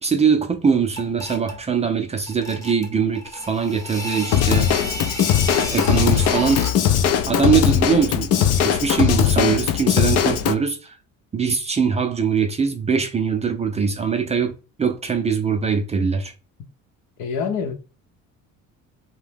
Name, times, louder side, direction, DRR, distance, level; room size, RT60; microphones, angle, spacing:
voice 1, 0.0-4.7 5.7-6.6 7.3-11.0 11.3-16.3, right 6 dB, 20° right, 0.4 m, -22 dB
sound 1, 1.0-1.6 2.3-6.9, equal, 10° left, 0.7 m, -32 dB
Drum kit / Drum, 4.3-10.5, left 9 dB, 50° left, 0.4 m, -19 dB
voice 2, 17.2-17.7, left 6 dB, 70° left, 0.8 m, -25 dB
2.8 x 2.1 x 3.4 m
cardioid pair, 110°, 33 cm